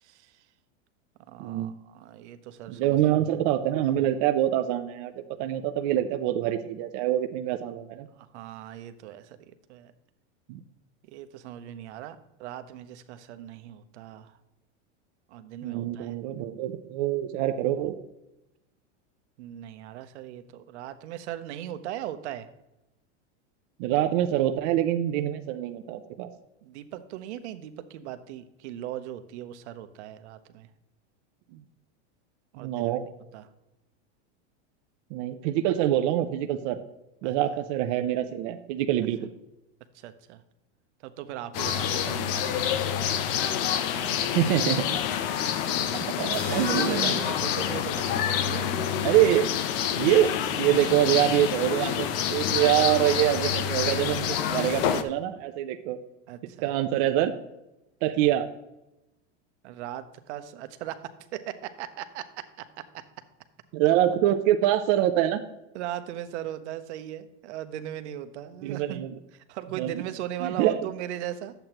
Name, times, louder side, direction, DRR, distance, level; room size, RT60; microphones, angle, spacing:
voice 1, 0.0-0.4 1.3-3.0 8.1-9.4 9.7-9.9 11.1-14.3 15.3-16.2 19.4-22.5 26.6-30.7 32.5-32.9 33.3-33.5 37.2-37.3 39.9-40.4 41.0-42.7 43.9-44.4 45.4-45.7 46.4-48.8 56.3-56.7 59.6-62.8 65.7-69.0 69.3-71.5, right 11 dB, 70° right, 11 dB, 0.8 m, -38 dB
voice 2, 1.4-1.8 2.7-8.1 10.5-10.6 15.6-18.0 23.8-26.3 31.5-31.6 32.6-33.0 35.1-36.8 37.2-39.3 44.3-45.0 46.0-47.2 49.0-49.5 50.0-56.0 56.6-57.3 58.0-58.5 63.7-65.4 68.6-69.1 69.8-70.0 70.4-70.9, right 12 dB, 35° right, 6 dB, 0.4 m, -25 dB
sound 1, 41.5-55.0, left 9 dB, 50° left, 0.6 m, -27 dB
sound 2, 46.3-50.3, left 3 dB, 85° left, 2.2 m, -45 dB
10.5 x 7.8 x 2.9 m, 0.93 s
supercardioid pair, 155°, 35 cm